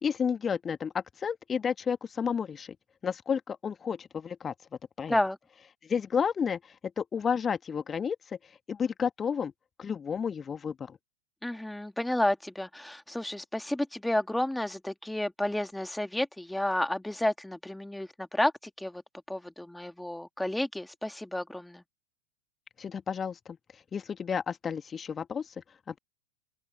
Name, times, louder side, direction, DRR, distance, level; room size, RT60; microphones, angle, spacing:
voice 1, 0.0-2.7 3.0-4.5 5.0-5.2 5.8-9.5 9.8-11.0 22.8-23.6 23.9-26.0, left 7 dB, 20° left, 1.5 m, -31 dB
voice 2, 11.4-18.5 18.8-19.0 19.3-21.8, left 1 dB, 5° left, 2.5 m, -31 dB
open air
figure-of-eight pair, 90°, 0 cm